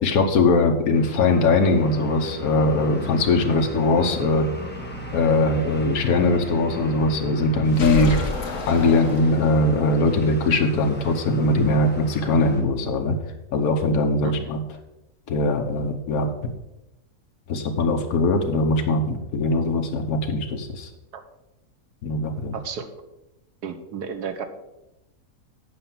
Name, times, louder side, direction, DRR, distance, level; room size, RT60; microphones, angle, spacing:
voice 1, 0.0-4.5 5.1-8.1 8.7-13.1 13.5-14.6 15.3-16.3 17.5-20.9 22.0-22.5, left 2 dB, 70° left, 3 dB, 1.5 m, -21 dB
sound 1, 0.9-12.6, equal, 5° left, 1.2 m, -37 dB
sound 2, 7.7-9.8, left 3 dB, 55° left, 1.6 m, -28 dB
voice 2, 22.5-22.9 23.6-24.5, right 7 dB, 90° right, 8 dB, 1.6 m, -32 dB
8.3 x 5.7 x 7.3 m, 0.93 s
omnidirectional pair, 1.7 m